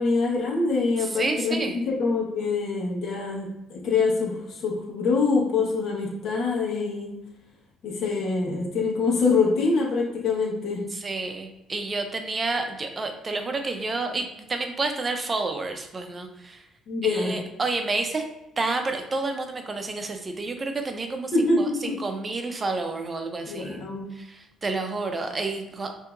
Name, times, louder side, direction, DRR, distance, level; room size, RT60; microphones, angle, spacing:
voice 1, 0.0-7.2 7.8-10.9 16.9-17.4 21.3-21.9 23.5-24.1, left 4 dB, 65° left, -3 dB, 1.3 m, -25 dB
voice 2, 1.1-1.8 10.9-16.6 17.0-18.2 18.6-25.9, right 3 dB, 25° right, 5 dB, 0.6 m, -30 dB
5.4 x 2.8 x 2.6 m, 0.91 s
cardioid pair, 110°, 0 cm